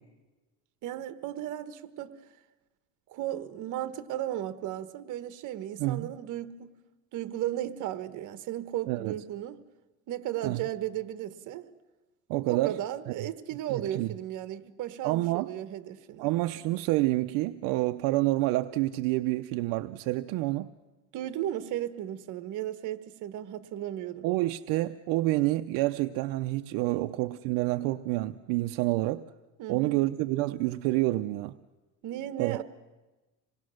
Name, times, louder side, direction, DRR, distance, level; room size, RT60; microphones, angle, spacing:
voice 1, 0.8-2.2 3.1-6.7 7.1-9.6 10.1-11.7 12.5-16.3 21.1-24.3 26.9-27.1 29.6-30.0 32.0-32.6, right 12 dB, 65° right, 1.3 m, -35 dB
voice 2, 12.3-12.8 13.7-14.1 15.0-15.5 16.2-20.7 24.2-29.2 29.7-31.5 32.4-32.6, right 18 dB, 85° right, 0.6 m, -28 dB
26.5 x 19.5 x 6.4 m
cardioid pair, 115°, 33 cm